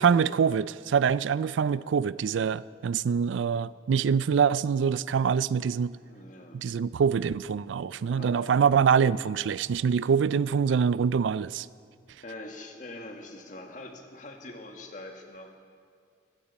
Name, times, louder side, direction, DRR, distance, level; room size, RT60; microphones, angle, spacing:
voice 1, 0.0-6.0 6.5-11.7, right 6 dB, 85° right, 18 dB, 0.4 m, -25 dB
voice 2, 6.0-6.6 8.1-8.6 12.2-15.5, left 2 dB, 40° left, 3 dB, 1.7 m, -44 dB
20.0 x 16.0 x 4.2 m, 2.2 s
head